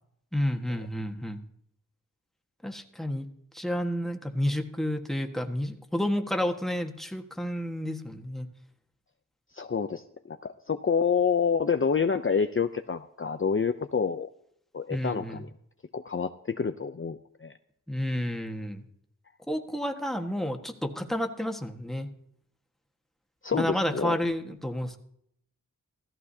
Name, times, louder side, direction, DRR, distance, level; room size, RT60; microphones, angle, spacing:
voice 1, 0.3-1.4 2.6-3.3 3.5-8.5 14.9-15.4 17.9-18.8 19.5-22.1 23.5-25.0, equal, ahead, 3 dB, 1.5 m, -30 dB
voice 2, 9.5-14.3 14.7-15.5 15.9-17.5 23.4-24.2, left 6 dB, 40° left, 8 dB, 0.6 m, -28 dB
15.5 x 14.5 x 2.8 m, 0.72 s
wide cardioid pair, 45°, 34 cm